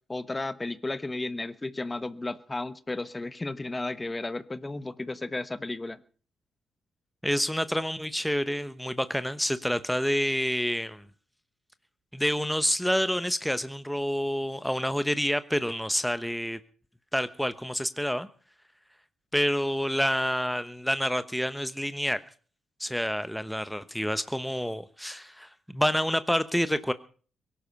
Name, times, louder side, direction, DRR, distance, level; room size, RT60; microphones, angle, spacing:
voice 1, 0.1-6.0, left 2 dB, 20° left, 14 dB, 1.2 m, -33 dB
voice 2, 7.2-11.0 12.1-16.6 17.1-18.3 19.3-22.2 22.8-26.9, equal, 5° left, 13 dB, 1.1 m, -28 dB
23.0 x 11.5 x 5.4 m, 0.42 s
figure-of-eight pair, 40°, 0 cm